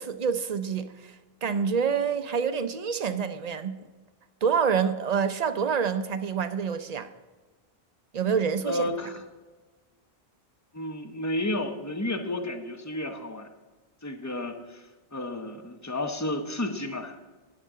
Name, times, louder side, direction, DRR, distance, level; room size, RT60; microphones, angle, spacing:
voice 1, 0.0-3.8 4.4-7.1 8.1-8.8, right 6 dB, 45° right, 0.6 m, -27 dB
voice 2, 8.6-9.2 10.7-13.5 14.0-14.8 15.1-17.1, left 1 dB, 20° left, 0.8 m, -31 dB
19.0 x 6.6 x 3.7 m
omnidirectional pair, 1.0 m